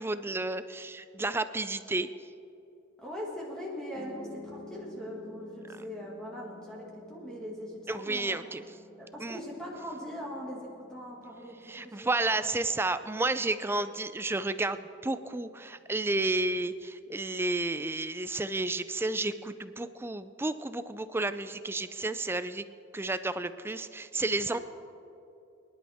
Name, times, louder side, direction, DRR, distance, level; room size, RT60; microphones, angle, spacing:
voice 1, 0.0-2.1 7.9-8.6 9.2-9.4 11.7-22.6 22.9-24.6, right 2 dB, 10° right, 12 dB, 0.4 m, -31 dB
voice 2, 3.0-8.4 9.0-12.6 24.5-24.6, equal, 5° left, -4 dB, 2.0 m, -41 dB
Piano, 3.9-16.1, left 2 dB, 50° left, 1.9 m, -51 dB
24.0 x 11.0 x 3.5 m, 2.7 s
head